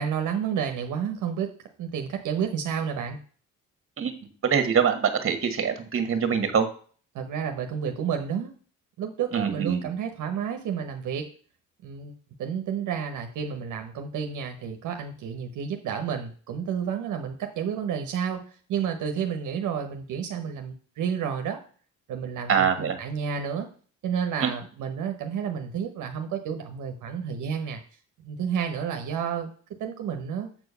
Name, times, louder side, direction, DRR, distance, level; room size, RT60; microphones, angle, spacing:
voice 1, 0.0-1.5 1.8-3.2 7.1-8.5 9.0-11.3 11.8-12.1 12.4-18.4 18.7-21.6 22.1-23.7 24.0-27.8 28.2-29.5 29.8-30.5, right 7 dB, 80° right, 4 dB, 1.1 m, -30 dB
voice 2, 4.4-6.7 9.3-9.9 22.5-23.0 24.4-24.5, right 7 dB, 45° right, 8 dB, 1.6 m, -24 dB
7.5 x 4.6 x 5.5 m, 0.42 s
cardioid pair, 90°, 30 cm